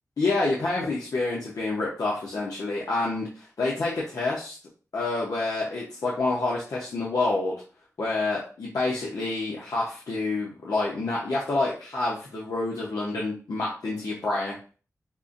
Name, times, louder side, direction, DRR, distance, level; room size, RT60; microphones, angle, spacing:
voice 1, 0.2-4.6 4.9-7.6 8.0-14.5, left 2 dB, 80° left, -5 dB, 0.8 m, -28 dB
5.3 x 2.5 x 2.5 m, 0.38 s
wide cardioid pair, 110°, 6 cm